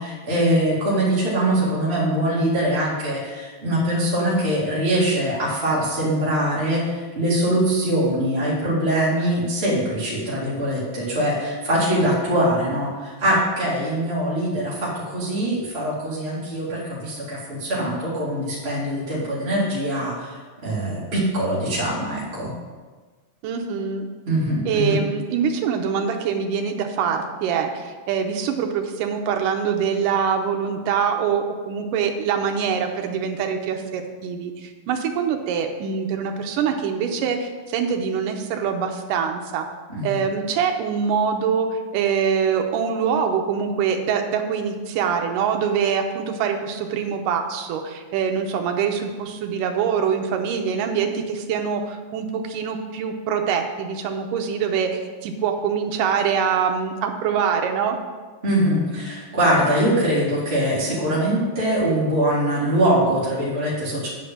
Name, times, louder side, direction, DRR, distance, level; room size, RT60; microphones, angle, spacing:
voice 1, 0.0-20.4 20.6-22.5 24.3-25.0 39.9-40.2 58.4-64.1, right 1 dB, 20° right, -8 dB, 2.1 m, -22 dB
voice 2, 23.4-24.1 24.7-39.7 40.0-58.0, right 7 dB, 80° right, 4 dB, 2.4 m, -24 dB
8.7 x 5.0 x 7.4 m, 1.4 s
omnidirectional pair, 3.9 m